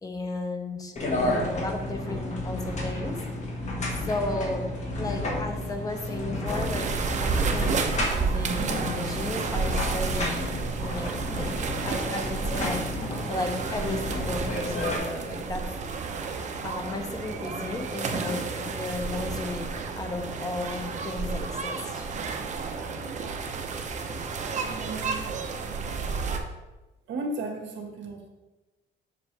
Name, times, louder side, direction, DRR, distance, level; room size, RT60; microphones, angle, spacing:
voice 1, 0.0-3.2 3.9-4.7 5.0-6.9 7.1-7.8 8.1-10.5 10.8-12.8 13.3-15.6 16.6-19.7 20.0-22.1, left 2 dB, 20° left, 4 dB, 0.9 m, -34 dB
sound 1, 1.0-15.0, left 1 dB, 35° left, 1.5 m, -32 dB
sound 2, 6.5-26.4, right 4 dB, 35° right, 0.8 m, -31 dB
voice 2, 24.7-25.1 27.1-28.3, right 2 dB, 70° right, 2 dB, 1.7 m, -34 dB
7.4 x 6.5 x 3.4 m, 1.1 s
cardioid pair, 150°, 20 cm